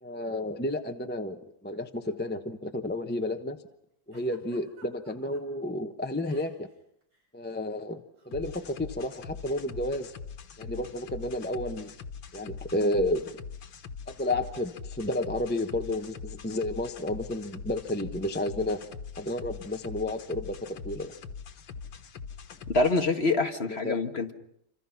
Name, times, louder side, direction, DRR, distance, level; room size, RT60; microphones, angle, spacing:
voice 1, 0.0-3.6 4.1-6.7 7.3-8.0 8.3-10.1 10.6-11.9 12.3-13.3 14.1-18.8 19.2-21.1 23.7-24.0, left 1 dB, 10° left, 6 dB, 0.7 m, -31 dB
Giggle, 4.1-5.4 6.2-6.8 7.0-7.3 8.2-8.4, right 2 dB, 70° right, 6.0 m, -55 dB
sound 1, 8.3-23.1, left 5 dB, 90° left, 2.1 m, -43 dB
voice 2, 22.7-24.3, left 3 dB, 35° left, 5 dB, 1.6 m, -25 dB
27.5 x 26.0 x 5.9 m, 0.75 s
omnidirectional pair, 2.1 m